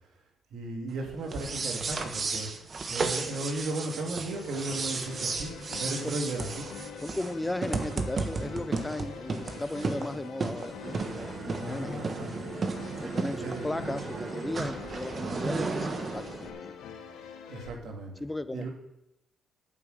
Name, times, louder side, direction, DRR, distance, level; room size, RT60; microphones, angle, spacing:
voice 1, 0.5-2.5 2.9-6.7 11.6-12.3 13.4-13.7 17.5-18.1 18.5-18.7, right 2 dB, 75° right, 2 dB, 2.4 m, -35 dB
sound 1, 1.2-16.5, right 4 dB, 40° right, 1.3 m, -34 dB
sound 2, 4.3-17.7, left 7 dB, 85° left, 1.1 m, -45 dB
voice 2, 7.0-12.3 13.0-16.8 18.2-18.7, left 2 dB, 10° left, 13 dB, 0.6 m, -36 dB
9.1 x 8.4 x 6.6 m, 0.87 s
cardioid pair, 90°, 0 cm